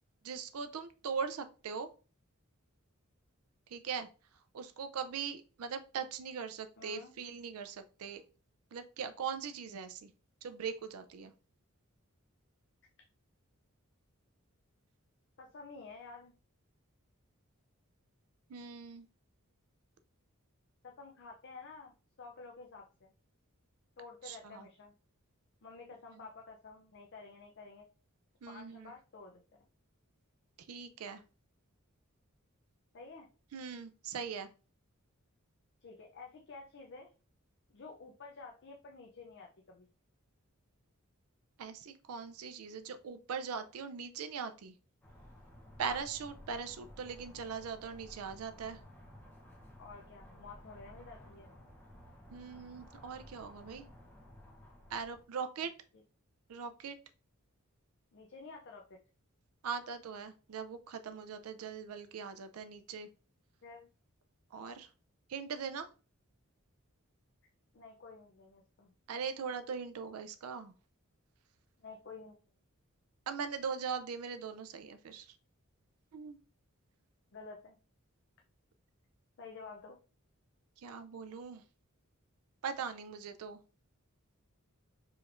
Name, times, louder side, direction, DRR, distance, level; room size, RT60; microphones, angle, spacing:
voice 1, 0.2-1.9 3.7-4.1 4.5-8.2 8.7-10.1 10.4-11.3 18.5-19.1 24.2-24.7 28.4-28.9 30.7-31.2 33.5-34.5 41.6-44.7 45.8-48.8 52.3-53.9 54.9-55.7 56.5-57.0 59.6-63.1 64.5-64.9 65.3-65.9 69.1-70.7 73.3-75.4 76.1-76.4 80.8-81.6 82.6-83.6, right 6 dB, 80° right, 9 dB, 0.4 m, -40 dB
voice 2, 6.8-7.1 15.4-16.3 20.8-23.1 24.0-24.9 25.6-27.9 28.5-29.4 32.9-33.3 35.8-37.1 37.7-39.9 45.9-46.0 49.8-51.5 58.1-59.0 63.6-63.9 67.7-68.9 71.8-72.3 77.3-77.7 79.4-80.0, left 4 dB, 55° left, 1 dB, 0.5 m, -51 dB
sound 1, 45.0-55.2, left 1 dB, 10° left, 0.8 m, -55 dB
4.9 x 3.0 x 2.5 m, 0.35 s
head